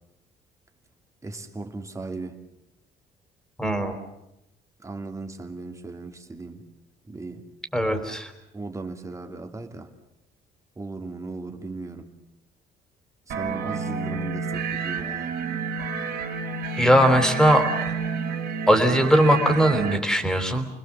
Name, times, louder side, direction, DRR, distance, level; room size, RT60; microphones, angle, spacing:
voice 1, 1.2-2.4 4.8-6.7 7.1-7.5 8.5-9.9 10.8-12.2 13.3-15.4, right 3 dB, 20° right, 5 dB, 2.6 m, -37 dB
voice 2, 3.6-4.0 7.7-8.3 16.8-17.7 18.7-20.7, equal, 5° left, 7 dB, 3.6 m, -19 dB
sound 1, 13.3-20.0, right 5 dB, 65° right, 3.4 m, -30 dB
29.5 x 20.5 x 7.5 m, 0.89 s
cardioid pair, 110°, 17 cm